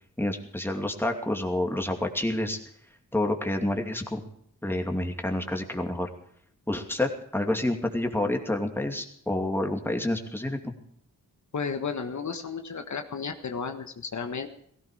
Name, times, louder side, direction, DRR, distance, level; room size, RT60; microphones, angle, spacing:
voice 1, 0.2-2.6 3.1-4.3 4.6-6.1 6.7-10.7, left 1 dB, 5° left, 3 dB, 2.6 m, -28 dB
voice 2, 11.5-14.5, left 5 dB, 60° left, 6 dB, 1.5 m, -33 dB
16.5 x 16.0 x 5.0 m, 0.68 s
cardioid pair, 70°, 33 cm